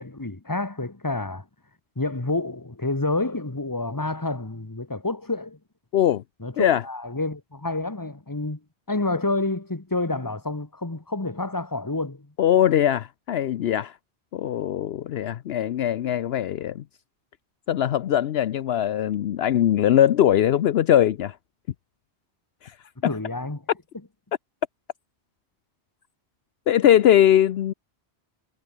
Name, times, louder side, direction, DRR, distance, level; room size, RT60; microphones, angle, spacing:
voice 1, 0.0-1.5 1.9-5.6 6.4-8.6 8.9-12.3 23.0-23.7, left 2 dB, 20° left, 1.6 m, -29 dB
voice 2, 5.9-6.2 6.6-6.8 12.4-13.9 14.3-16.8 17.7-21.4 23.0-23.1 26.7-27.7, left 11 dB, 70° left, 0.9 m, -21 dB
omnidirectional pair, 1.1 m